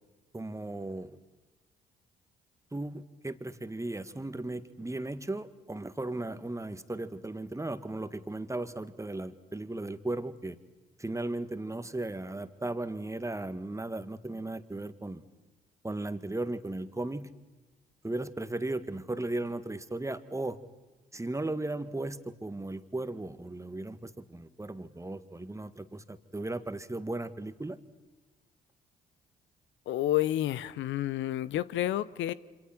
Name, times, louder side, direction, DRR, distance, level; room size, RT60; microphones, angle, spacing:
voice 1, 0.3-1.2 2.7-10.6 11.0-15.2 15.8-17.3 18.0-20.6 21.1-27.8, right 2 dB, 15° right, 11 dB, 1.9 m, -36 dB
voice 2, 29.9-32.3, left 13 dB, 65° left, 17 dB, 0.8 m, -30 dB
27.0 x 26.5 x 6.1 m, 1.2 s
hypercardioid pair, 45°, 21 cm